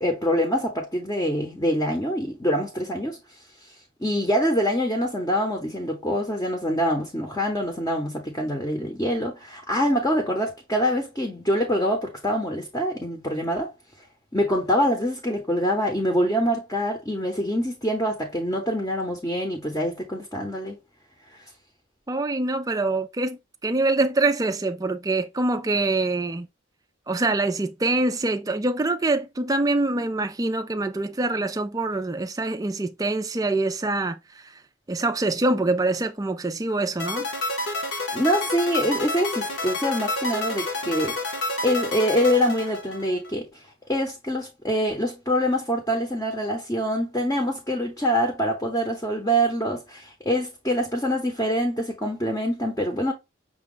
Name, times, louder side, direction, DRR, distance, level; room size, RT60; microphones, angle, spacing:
voice 1, 0.0-13.7 14.3-20.8 21.3-21.4 38.1-41.2 41.6-43.6 43.9-53.1, equal, 15° left, 0.8 m, -25 dB
voice 2, 22.1-26.5 27.1-34.4 34.9-37.3, right 2 dB, 20° right, 0.4 m, -25 dB
sound 1, 37.0-43.3, left 2 dB, 60° left, 1.1 m, -29 dB
6.0 x 2.3 x 3.8 m
head